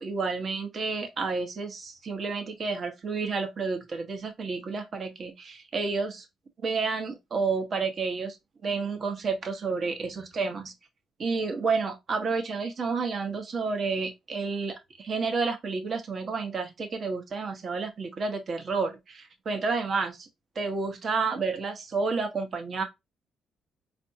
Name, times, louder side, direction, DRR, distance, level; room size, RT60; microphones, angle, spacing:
voice 1, 0.0-6.2 6.6-8.4 8.6-10.7 11.2-20.3 20.6-22.8, right 4 dB, 50° right, 1.0 m, -30 dB
4.5 x 2.7 x 2.6 m
cardioid pair, 90°, 0 cm